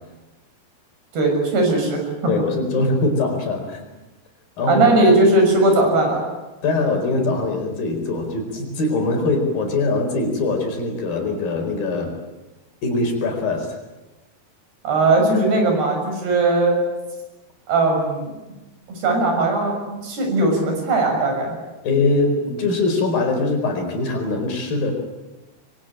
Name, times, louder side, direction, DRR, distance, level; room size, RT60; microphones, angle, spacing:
voice 1, 1.1-2.0 2.7-2.8 4.7-6.2 14.8-16.8 17.7-18.4 18.9-21.6, right 2 dB, 80° right, 2 dB, 8.6 m, -18 dB
voice 2, 2.3-3.8 4.6-4.9 6.6-12.1 12.8-13.8 21.8-24.9, left 3 dB, 60° left, 3 dB, 6.3 m, -22 dB
25.5 x 24.0 x 8.9 m, 1.1 s
omnidirectional pair, 4.6 m